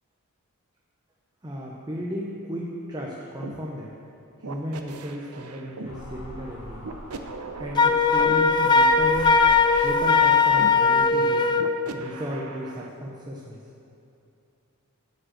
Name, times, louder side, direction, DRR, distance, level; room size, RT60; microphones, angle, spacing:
voice 1, 1.4-3.9 4.5-6.9 7.6-9.5 9.8-11.5 11.9-13.6, equal, 20° right, -3 dB, 0.8 m, -34 dB
sound 1, 3.4-3.6 4.4-6.0 6.8-8.3 9.2-10.7 11.6-12.9, right 4 dB, 80° right, 0.7 m, -38 dB
sound 2, 5.8-11.1, equal, 65° left, 2.2 m, -43 dB
Wind instrument woodwind instrument, 7.8-11.7, left 4 dB, 20° left, 0.3 m, -19 dB
9.9 x 5.4 x 7.7 m, 2.7 s
head